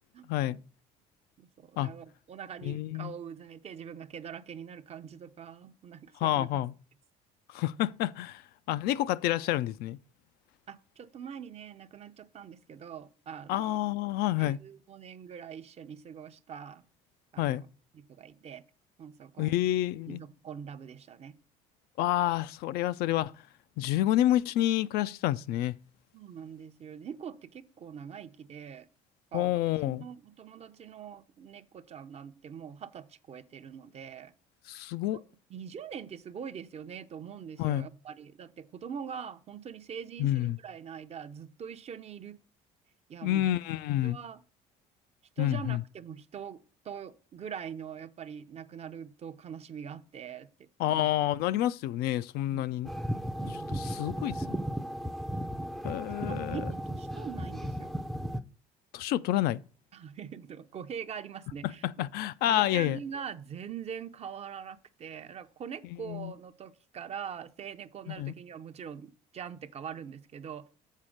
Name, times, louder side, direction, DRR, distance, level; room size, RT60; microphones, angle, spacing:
voice 1, 0.1-0.6 1.4-6.5 10.7-13.8 14.4-16.8 17.3-17.5 17.9-18.6 19.0-19.5 20.1-21.3 26.1-28.9 29.3-34.3 35.1-35.2 35.5-42.4 43.1-43.6 44.0-44.4 45.4-51.1 52.5-52.8 53.4-54.0 56.3-57.9 59.9-62.1 62.5-70.7, right 7 dB, 40° right, 0.6 m, -43 dB
voice 2, 2.6-3.1 6.2-6.7 7.5-8.4 8.7-10.0 13.5-14.6 17.4-17.6 19.4-20.2 22.0-23.3 23.8-25.7 29.3-30.0 34.7-35.2 37.6-37.9 40.2-40.6 43.2-44.2 45.4-45.8 50.8-52.9 53.7-54.6 55.8-56.6 58.9-59.6 61.8-63.0 66.1-66.3 68.1-68.3, left 14 dB, 70° left, 0.4 m, -28 dB
sound 1, 52.8-58.4, equal, ahead, 0.5 m, -35 dB
7.4 x 4.2 x 6.4 m
supercardioid pair, 90°, 17 cm